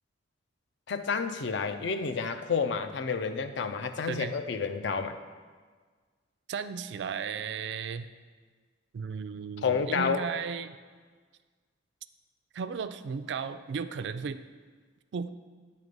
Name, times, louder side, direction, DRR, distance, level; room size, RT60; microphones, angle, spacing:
voice 1, 0.9-5.2 9.6-10.2, left 5 dB, 65° left, 9 dB, 0.5 m, -30 dB
voice 2, 6.5-8.1 8.9-10.8 12.5-14.4 15.1-15.3, right 6 dB, 60° right, 12 dB, 0.3 m, -35 dB
9.3 x 3.3 x 5.2 m, 1.5 s
head